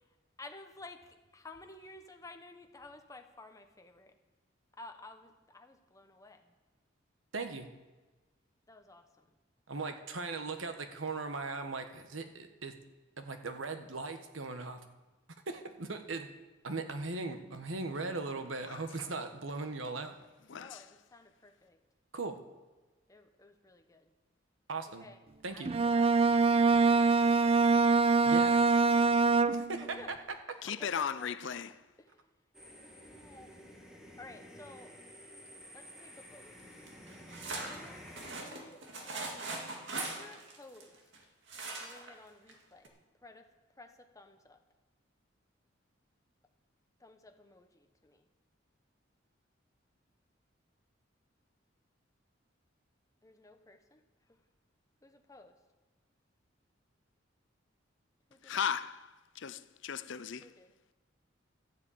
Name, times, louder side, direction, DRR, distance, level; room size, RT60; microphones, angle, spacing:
voice 1, 0.4-4.1 4.8-6.4 8.7-9.1 20.5-21.8 23.1-24.0 25.0-26.2 28.2-28.5 28.9-29.4 29.8-30.1 30.7-31.6 32.0-32.1 33.0-33.5 34.2-35.0 35.7-36.5 37.7-38.0 38.4-39.5 39.9-41.0 41.8-42.9 43.2-43.5 43.8-44.6 47.0-47.7 48.0-48.2 53.2-54.0 55.0-55.5 58.3-58.6 60.4-60.7, left 2 dB, 15° left, 1.1 m, -53 dB
voice 2, 7.3-7.7 9.7-12.7 13.2-14.8 15.5-16.3 16.6-20.1 22.1-22.4 24.7-25.1 25.4-25.7 28.2-28.6 29.5-30.4, right 3 dB, 85° right, 1.3 m, -38 dB
voice 3, 20.5-20.9 30.6-31.8 58.4-60.5, left 7 dB, 65° left, 0.6 m, -37 dB
Bowed string instrument, 25.6-29.9, right 4 dB, 30° right, 0.4 m, -24 dB
sound 1, 32.5-38.3, equal, 5° right, 1.8 m, -51 dB
sound 2, 36.9-41.2 41.5-42.1 42.5-42.6 42.8-42.9, right 3 dB, 65° right, 2.2 m, -41 dB
12.5 x 7.5 x 8.6 m
head